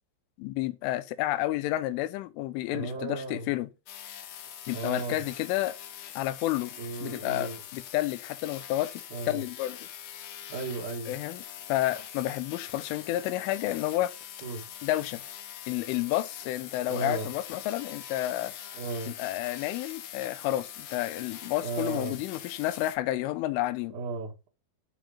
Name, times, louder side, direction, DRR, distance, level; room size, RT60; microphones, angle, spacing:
voice 1, 0.4-3.7 4.7-5.8 6.2-9.8 11.1-11.4 11.7-14.1 14.8-15.2 15.7-18.5 19.1-24.0, left 15 dB, 85° left, 3.4 m, -30 dB
voice 2, 2.7-3.5 4.7-5.2 6.8-7.6 9.1-9.4 10.5-11.2 14.4-14.6 16.9-17.3 18.7-19.1 21.6-22.2 23.9-24.5, right 4 dB, 50° right, 2.6 m, -35 dB
sound 1, 3.9-23.0, left 10 dB, 70° left, 2.1 m, -43 dB
12.0 x 5.0 x 5.1 m
omnidirectional pair, 5.5 m